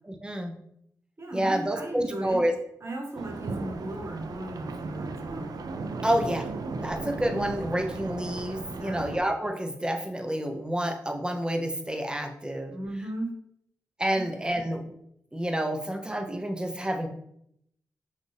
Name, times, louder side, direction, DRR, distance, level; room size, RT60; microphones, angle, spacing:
voice 1, 0.1-0.5 1.3-2.5 6.0-6.5 6.8-12.7 14.0-14.8 15.3-17.1, right 1 dB, 15° right, 4 dB, 0.8 m, -29 dB
voice 2, 1.2-2.4 2.8-5.5 8.6-9.1 12.7-13.3 14.1-14.2, right 1 dB, 40° right, 1 dB, 1.3 m, -36 dB
sound 1, 3.2-9.2, right 3 dB, 65° right, 0.5 m, -36 dB
5.8 x 2.7 x 3.4 m, 0.74 s
cardioid pair, 50°, 7 cm